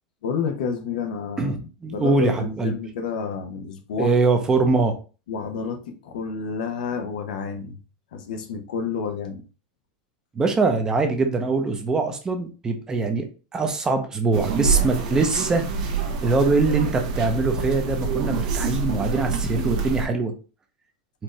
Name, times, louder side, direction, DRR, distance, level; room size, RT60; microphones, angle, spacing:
voice 1, 0.2-1.6 1.9-4.1 5.3-7.8 8.1-9.4, left 6 dB, 85° left, 6 dB, 0.8 m, -30 dB
voice 2, 1.8-2.8 4.0-5.0 10.3-13.3 13.5-15.6 16.2-20.3, right 3 dB, 15° right, 5 dB, 0.6 m, -22 dB
sound 1, 14.3-20.1, right 5 dB, 65° right, 0.8 m, -26 dB
4.4 x 2.5 x 3.1 m, 0.33 s
supercardioid pair, 145°, 4 cm